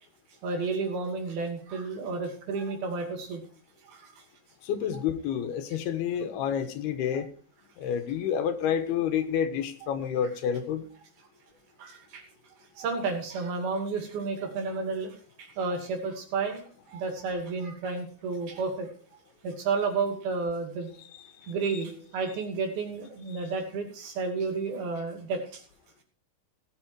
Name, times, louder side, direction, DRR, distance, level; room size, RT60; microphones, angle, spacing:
voice 1, 0.4-3.4 3.8-4.1 11.8-12.2 12.8-18.9 19.4-20.9 21.5-25.6, right 4 dB, 75° right, 4 dB, 4.5 m, -31 dB
voice 2, 4.6-7.3 7.8-10.9 21.4-21.5, left 8 dB, 85° left, 10 dB, 3.3 m, -29 dB
17.5 x 7.9 x 4.7 m, 0.42 s
omnidirectional pair, 4.4 m